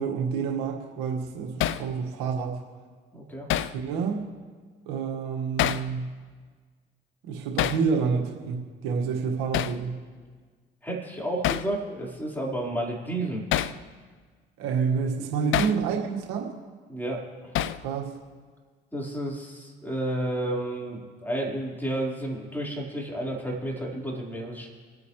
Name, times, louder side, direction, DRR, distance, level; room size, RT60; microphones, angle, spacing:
voice 1, 0.0-2.6 3.7-4.2 4.9-6.1 7.2-10.0 14.6-16.5 17.8-18.1, right 5 dB, 85° right, 1 dB, 1.8 m, -28 dB
Hammer, 1.6-1.9 3.5-3.8 5.6-5.9 7.6-7.8 9.5-9.8 11.4-11.7 13.5-13.8 15.5-15.8 17.5-17.9, left 12 dB, 70° left, 0.6 m, -26 dB
voice 2, 3.1-3.5 10.8-13.4 15.4-15.6 16.9-17.5 18.9-24.7, right 1 dB, 10° left, -3 dB, 4.6 m, -31 dB
27.5 x 9.6 x 3.3 m, 1.5 s
supercardioid pair, 65°, 21 cm